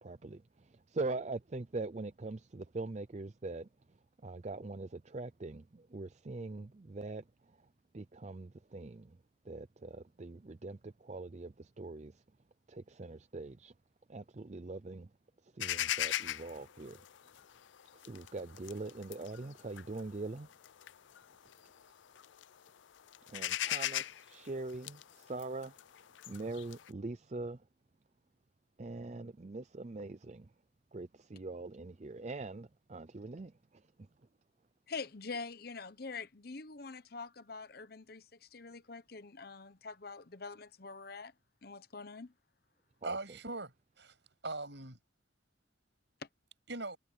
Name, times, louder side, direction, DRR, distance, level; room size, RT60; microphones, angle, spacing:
voice 1, 0.0-3.7 4.2-7.6 7.9-9.2 9.4-12.2 12.7-13.7 14.1-15.1 15.4-17.0 17.9-20.5 23.3-25.7 26.3-27.6 28.8-30.5 30.9-34.1 43.0-43.2, right 3 dB, 35° right, 0.5 m, -43 dB
sound 1, 15.6-21.8 22.2-22.7 23.0-26.9, left 12 dB, 70° left, 0.4 m, -38 dB
voice 2, 34.9-41.3 41.6-42.3, left 4 dB, 50° left, 0.9 m, -45 dB
voice 3, 43.0-44.1 44.4-45.0 46.7-47.0, right 2 dB, 65° right, 7.3 m, -40 dB
head